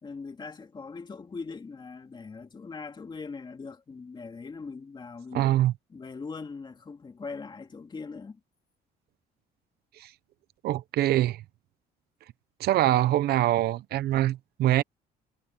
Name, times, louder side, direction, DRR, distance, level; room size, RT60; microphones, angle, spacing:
voice 1, 0.0-5.5 5.9-8.4, left 4 dB, 25° left, 2.5 m, -41 dB
voice 2, 5.3-5.7 10.0-10.1 10.6-11.4 12.6-14.8, right 14 dB, 70° right, 0.7 m, -24 dB
cardioid pair, 110°, 17 cm